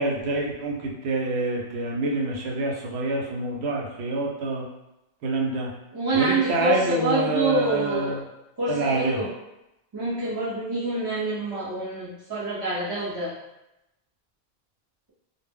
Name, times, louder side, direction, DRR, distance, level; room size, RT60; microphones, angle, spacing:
voice 1, 0.0-4.6 5.2-5.7 6.1-8.2 8.7-9.2, right 2 dB, 80° right, -1 dB, 0.9 m, -27 dB
voice 2, 5.9-8.2 8.6-9.3 9.9-13.3, right 2 dB, 35° right, -9 dB, 0.4 m, -26 dB
2.1 x 2.0 x 3.4 m, 0.92 s
omnidirectional pair, 1.1 m